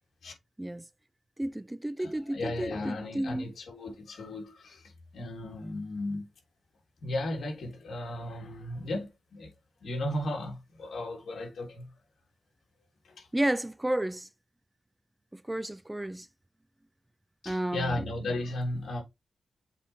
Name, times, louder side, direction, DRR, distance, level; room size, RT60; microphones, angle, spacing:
voice 1, 1.4-3.5 13.3-14.3 15.3-16.3 17.5-18.1, right 1 dB, 10° right, 0.3 m, -32 dB
voice 2, 2.0-6.2 7.0-9.5 9.8-11.9 13.0-13.3 17.4-19.0, left 1 dB, 75° left, 3.3 m, -35 dB
7.4 x 4.2 x 3.4 m
wide cardioid pair, 120°, 0 cm